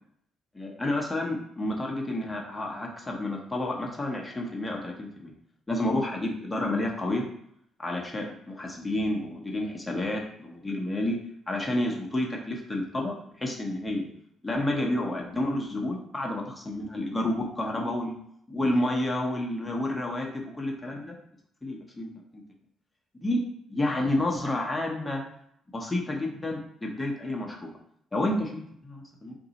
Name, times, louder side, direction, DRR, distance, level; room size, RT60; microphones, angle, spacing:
voice 1, 0.5-5.3 5.7-7.2 7.8-11.2 11.5-14.1 14.4-18.2 18.5-21.2 21.6-22.4 23.2-23.4 23.7-25.2 25.7-27.7 28.1-29.4, left 1 dB, 15° left, -1 dB, 0.8 m, -30 dB
3.9 x 2.7 x 3.9 m, 0.69 s
cardioid pair, 90°, 0 cm